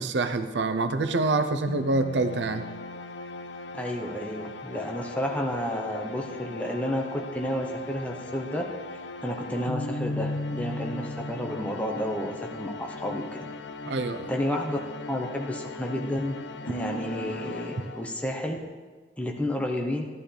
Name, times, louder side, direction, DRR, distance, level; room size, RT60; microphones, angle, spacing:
voice 1, 0.0-2.6 13.9-14.3, right 3 dB, 85° right, 9 dB, 0.7 m, -26 dB
sound 1, 1.7-18.4, left 2 dB, 85° left, 0.6 m, -37 dB
voice 2, 3.7-8.7 8.9-13.2 14.3-14.8 15.1-18.6 19.2-20.0, left 1 dB, 10° left, 1 dB, 0.9 m, -31 dB
15.0 x 11.5 x 3.4 m, 1.4 s
head